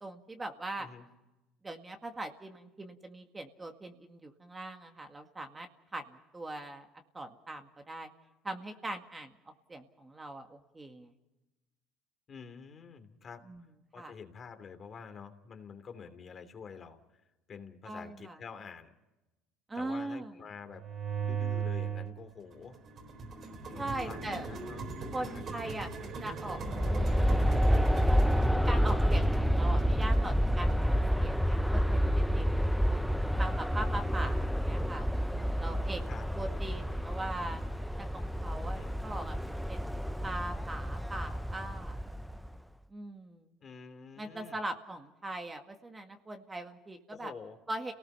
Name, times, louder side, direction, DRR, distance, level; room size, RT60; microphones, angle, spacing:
voice 1, 0.0-0.9 1.6-6.9 7.1-8.1 8.4-9.3 9.7-11.1 13.5-13.7 14.0-14.1 17.8-18.4 19.7-20.3 23.8-24.5 25.1-26.6 26.9-28.2 28.7-32.5 32.8-36.0 36.4-37.6 38.0-39.8 40.2-42.0 42.9-43.5 44.2-47.3 47.7-47.9, right 2 dB, 15° right, 5 dB, 2.0 m, -41 dB
voice 2, 12.3-13.4 13.9-17.2 17.5-18.9 19.7-20.8 21.2-22.8 23.7-24.8 25.1-25.7 36.1-36.3 38.7-39.0 43.6-44.6 47.1-47.6, left 6 dB, 35° left, 7 dB, 2.9 m, -48 dB
sound 1, 20.7-22.1 22.5-31.1, right 5 dB, 45° right, 4.0 m, -39 dB
Aircraft, 26.5-42.6, equal, ahead, 0.7 m, -29 dB
29.5 x 19.0 x 5.6 m, 0.99 s
supercardioid pair, 105°, 0 cm